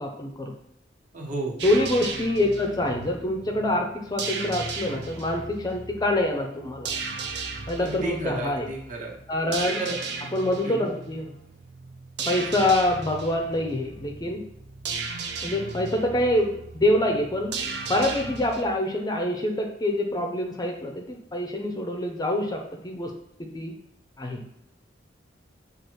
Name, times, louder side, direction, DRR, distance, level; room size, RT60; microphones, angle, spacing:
voice 1, 0.0-0.5 1.6-6.9 7.7-8.7 9.3-9.8 10.3-11.3 12.3-14.4 15.4-17.6 17.9-23.1 23.4-23.7 24.2-24.5, left 1 dB, 20° left, 2 dB, 0.4 m, -26 dB
voice 2, 1.1-1.5 7.8-9.2 9.8-10.0 10.6-10.9, right 2 dB, 45° right, -2 dB, 1.0 m, -32 dB
sound 1, 1.6-18.6, right 4 dB, 65° right, 0.5 m, -36 dB
6.4 x 2.4 x 3.1 m, 0.77 s
head